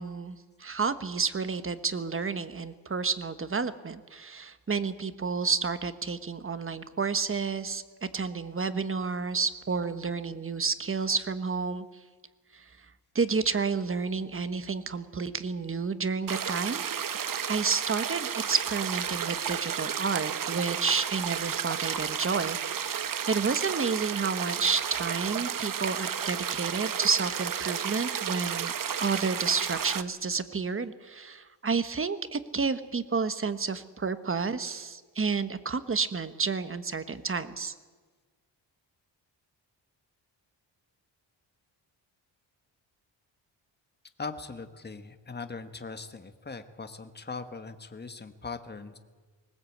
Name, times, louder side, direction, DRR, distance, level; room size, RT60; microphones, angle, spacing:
voice 1, 0.0-11.8 13.1-16.8 17.5-28.7 29.0-37.7, right 5 dB, 30° right, 12 dB, 1.2 m, -30 dB
sound 1, 16.3-30.0, right 8 dB, 45° right, 1.0 m, -32 dB
voice 2, 44.2-49.0, left 4 dB, 20° left, 9 dB, 1.4 m, -40 dB
20.0 x 19.0 x 8.6 m, 1.4 s
wide cardioid pair, 115°, 45 cm